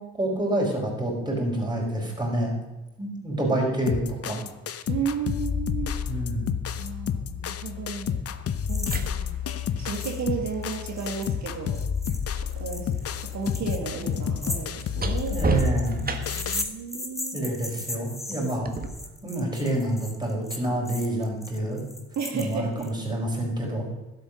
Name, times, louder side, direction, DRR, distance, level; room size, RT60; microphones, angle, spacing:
voice 1, 0.2-2.5 3.0-4.4 6.1-6.4 15.3-16.1 17.3-18.7 19.2-21.8 22.3-23.9, right 1 dB, 15° right, -2 dB, 4.5 m, -27 dB
sound 1, 3.9-16.7, left 8 dB, 50° left, 0.8 m, -30 dB
voice 2, 4.9-5.9 6.8-8.2 8.7-9.4 9.8-11.8 12.5-15.4 16.3-17.4 22.1-22.9, right 6 dB, 65° right, 2 dB, 1.7 m, -33 dB
sound 2, 7.3-7.4 8.5-12.6 12.8-16.6 18.6-18.9, right 4 dB, 30° right, 1.4 m, -33 dB
sound 3, 8.7-9.0 9.3-9.4 9.9-10.2 10.5-22.9, left 1 dB, 10° left, 1.4 m, -37 dB
12.0 x 7.9 x 6.2 m, 1.1 s
cardioid pair, 90°, 30 cm